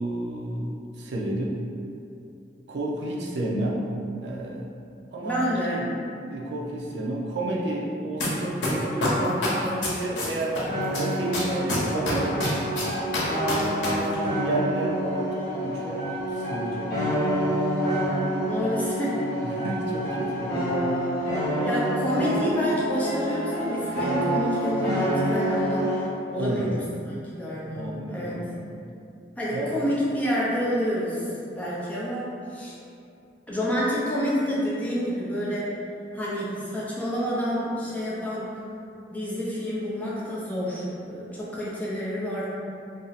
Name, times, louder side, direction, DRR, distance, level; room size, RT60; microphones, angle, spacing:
voice 1, 0.0-1.6 2.7-3.9 4.2-4.7 5.1-5.9 6.2-13.2 13.8-16.0 16.3-17.6 19.4-20.7 21.5-21.9 26.3-26.8 27.7-28.7 29.5-29.8, right 1 dB, 70° right, -3 dB, 0.4 m, -31 dB
voice 2, 5.2-5.8 18.4-19.2 21.4-28.4 29.4-32.8 33.5-35.7 36.1-38.5 39.1-42.5, equal, 10° left, -7 dB, 0.5 m, -28 dB
sound 1, 8.2-8.3 8.6-10.6 10.9-13.9 14.1-14.2, left 2 dB, 85° left, 0.8 m, -27 dB
sound 2, 10.7-26.1, equal, 55° left, 0.7 m, -27 dB
2.6 x 2.0 x 4.0 m, 2.6 s
head